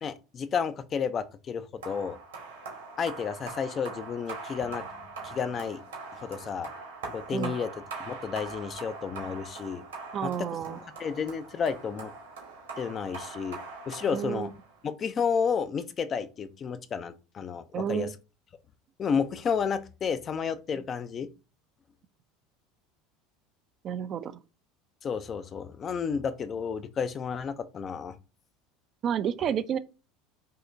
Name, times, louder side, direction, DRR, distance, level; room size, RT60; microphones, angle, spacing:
voice 1, 0.0-2.2 3.0-4.9 5.2-5.8 6.1-6.7 7.1-7.7 8.0-9.8 10.2-10.3 10.7-12.1 12.8-13.6 13.9-14.5 15.0-18.1 19.0-21.3 25.0-28.2, left 6 dB, 40° left, 0.5 m, -31 dB
sound 1, 1.8-14.8, right 4 dB, 85° right, 1.9 m, -42 dB
voice 2, 10.1-10.8 14.1-14.5 17.7-18.1 23.8-24.4 29.0-29.8, right 8 dB, 45° right, 0.4 m, -30 dB
5.5 x 2.8 x 2.6 m
hypercardioid pair, 80°, 0 cm